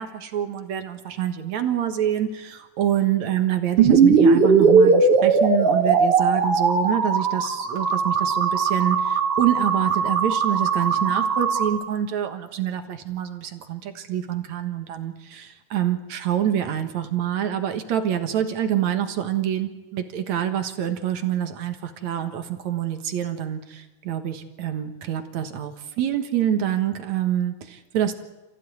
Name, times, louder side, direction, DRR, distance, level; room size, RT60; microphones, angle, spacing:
voice 1, 0.0-28.1, right 10 dB, 65° right, 7 dB, 2.6 m, -26 dB
sound 1, 3.8-11.7, right 5 dB, 50° right, 2.7 m, -19 dB
28.5 x 15.0 x 9.5 m, 1.1 s
omnidirectional pair, 3.7 m